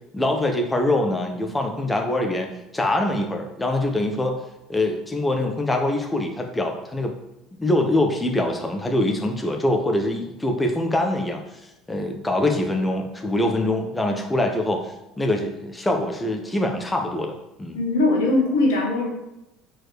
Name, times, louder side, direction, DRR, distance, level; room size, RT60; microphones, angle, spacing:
voice 1, 0.1-4.3 4.7-7.1 7.6-11.4 11.9-17.8, left 1 dB, 15° left, 3 dB, 1.0 m, -24 dB
voice 2, 17.7-19.1, left 2 dB, 75° left, 1 dB, 1.4 m, -20 dB
4.6 x 4.3 x 4.7 m, 0.90 s
hypercardioid pair, 70°, 0 cm